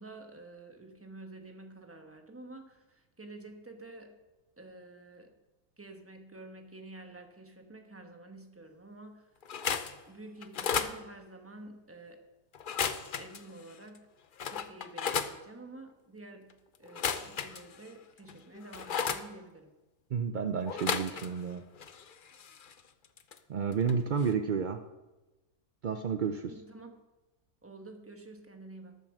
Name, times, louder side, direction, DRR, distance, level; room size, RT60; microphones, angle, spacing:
voice 1, 0.0-4.1 4.6-5.3 5.8-9.3 10.1-12.2 13.1-14.1 14.4-16.5 16.8-19.7 26.4-27.0 27.6-29.0, right 2 dB, 10° right, 5 dB, 1.0 m, -49 dB
sound 1, 9.4-10.0 10.4-11.0 12.5-13.4 14.0-14.1 14.4-15.3 16.9-17.9 18.3-19.2 20.7-21.5 21.8-23.4 23.7-23.9 24.2-24.3, left 7 dB, 55° left, 0.6 m, -34 dB
voice 2, 20.1-21.6 23.5-24.8 25.8-26.5, right 6 dB, 65° right, 7 dB, 0.4 m, -31 dB
13.5 x 7.4 x 6.4 m, 1.1 s
omnidirectional pair, 1.6 m